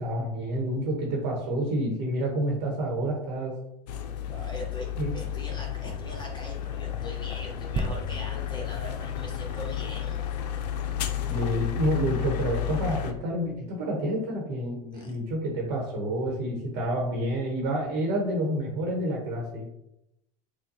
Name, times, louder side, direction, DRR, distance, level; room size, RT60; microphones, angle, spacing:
voice 1, 0.0-3.5 5.0-5.1 11.3-19.7, right 1 dB, 60° right, 0 dB, 1.0 m, -29 dB
sound 1, 3.9-13.1, left 10 dB, 80° left, 0.5 m, -32 dB
voice 2, 4.2-10.3 14.9-15.1, equal, 20° left, -2 dB, 1.0 m, -41 dB
sound 2, 7.8-11.3 12.0-12.1, right 2 dB, 25° right, 0.4 m, -37 dB
4.4 x 2.2 x 2.7 m, 0.81 s
hypercardioid pair, 95°, 21 cm